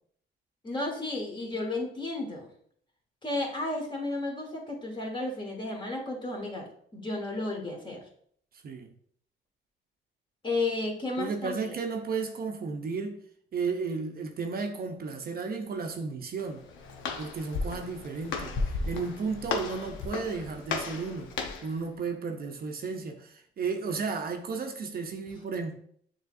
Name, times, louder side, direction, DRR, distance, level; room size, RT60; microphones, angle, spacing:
voice 1, 0.6-2.5 3.2-8.0 10.4-11.8, left 2 dB, 25° left, 1.4 m, -33 dB
voice 2, 11.2-13.2 13.5-16.6 17.2-21.3 21.6-25.7, right 4 dB, 50° right, 0.6 m, -33 dB
Walk footsteps, 16.4-21.8, left 4 dB, 80° left, 0.8 m, -34 dB
6.6 x 3.1 x 2.5 m
cardioid pair, 90°, 20 cm